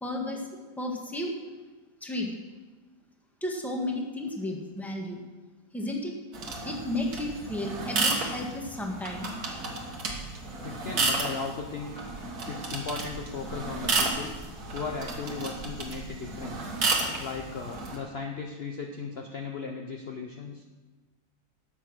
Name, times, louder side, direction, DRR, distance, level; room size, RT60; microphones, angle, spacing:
voice 1, 0.0-0.5 0.8-1.3 2.0-2.3 3.4-5.2 5.7-6.1 6.6-9.3, left 1 dB, ahead, 1 dB, 1.4 m, -33 dB
sound 1, 6.3-18.0, right 3 dB, 70° right, 2.1 m, -32 dB
voice 2, 10.6-12.0 12.5-14.3 14.7-16.7 17.2-20.6, left 4 dB, 50° left, 2 dB, 0.9 m, -36 dB
12.5 x 7.3 x 6.2 m, 1.3 s
omnidirectional pair, 1.7 m